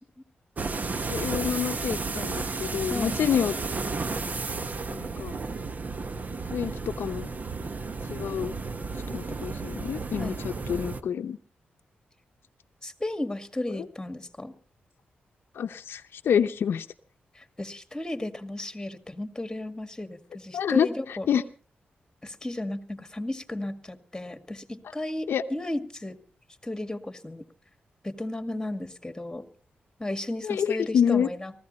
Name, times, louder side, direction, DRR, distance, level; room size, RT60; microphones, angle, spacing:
sound 1, 0.6-11.0, right 4 dB, 45° right, 1.1 m, -33 dB
voice 1, 1.1-3.5 4.9-5.3 6.5-6.7 7.0-7.3 8.1-8.5 9.1-11.4 15.6-16.9 20.5-21.4 25.3-25.4 30.4-31.3, left 8 dB, 80° left, 8 dB, 0.7 m, -27 dB
voice 2, 2.9-3.2 10.2-10.4 12.8-14.5 17.4-21.3 22.2-26.2 26.6-27.5 28.0-29.4 30.0-31.5, left 1 dB, 15° left, 9 dB, 2.0 m, -34 dB
19.0 x 15.0 x 4.2 m, 0.41 s
cardioid pair, 60°, 4 cm